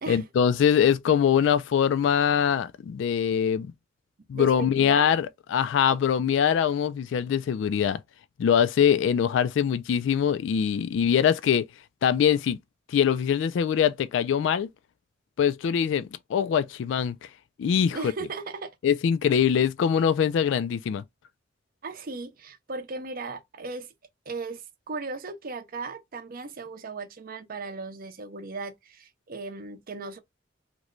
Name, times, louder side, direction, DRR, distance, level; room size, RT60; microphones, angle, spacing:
voice 1, 0.1-3.7 4.3-8.0 8.4-11.6 12.0-12.6 12.9-14.7 15.4-17.2 17.6-18.0 18.8-21.0, left 8 dB, 70° left, 0.3 m, -23 dB
voice 2, 4.3-5.1 17.9-18.7 21.8-23.9 24.3-30.2, right 3 dB, 50° right, 0.6 m, -37 dB
3.0 x 2.1 x 3.7 m
head